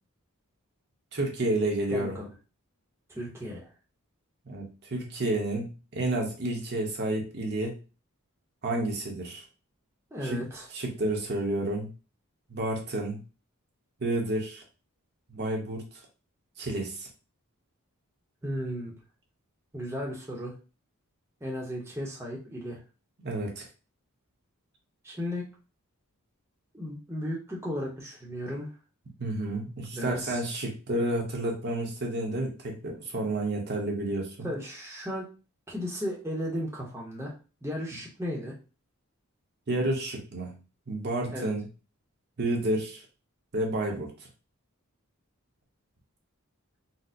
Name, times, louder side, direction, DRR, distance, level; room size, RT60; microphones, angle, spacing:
voice 1, 1.1-2.2 4.5-7.8 8.6-9.4 10.2-10.4 10.7-11.9 12.5-13.2 14.0-14.6 15.3-15.8 16.6-17.1 23.2-23.7 29.2-34.5 39.7-40.5 40.9-41.6 42.4-43.0 43.5-44.1, right 1 dB, 50° right, 0 dB, 0.8 m, -30 dB
voice 2, 1.9-2.3 3.1-3.7 10.1-10.7 18.4-18.9 19.7-20.5 21.4-22.8 25.0-25.4 26.7-28.7 29.9-30.4 34.4-35.2 35.7-37.3 37.6-38.5 41.3-41.5, equal, 10° right, -3 dB, 0.7 m, -35 dB
4.1 x 2.0 x 2.5 m, 0.32 s
head